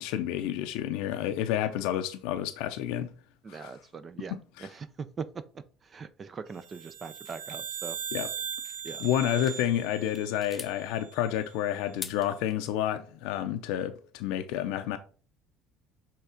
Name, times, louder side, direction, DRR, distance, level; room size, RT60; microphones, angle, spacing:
voice 1, 0.0-3.1 3.5-3.7 4.3-4.7 8.1-8.3 9.0-15.0, left 11 dB, 80° left, 0.5 m, -30 dB
voice 2, 3.4-8.0 8.8-9.1, right 5 dB, 30° right, 0.4 m, -41 dB
sound 1, 6.6-11.2, right 8 dB, 85° right, 0.6 m, -39 dB
sound 2, 7.2-9.6 10.0-10.8 11.8-12.7, left 5 dB, 25° left, 0.5 m, -45 dB
5.6 x 3.5 x 5.0 m
cardioid pair, 120°, 0 cm